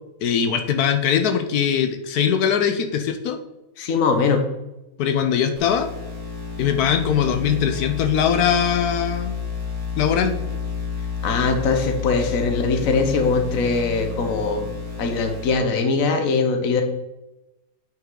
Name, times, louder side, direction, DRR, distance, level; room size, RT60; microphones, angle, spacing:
voice 1, 0.2-3.4 5.0-5.9 6.6-9.3 10.0-10.3, left 8 dB, 85° left, 6 dB, 1.2 m, -21 dB
voice 2, 3.8-4.4 11.2-14.7 15.0-16.8, left 4 dB, 65° left, 5 dB, 1.4 m, -21 dB
sound 1, 5.6-15.5, left 5 dB, 20° right, 2.2 m, -30 dB
9.1 x 5.8 x 3.8 m, 0.95 s
omnidirectional pair, 1.6 m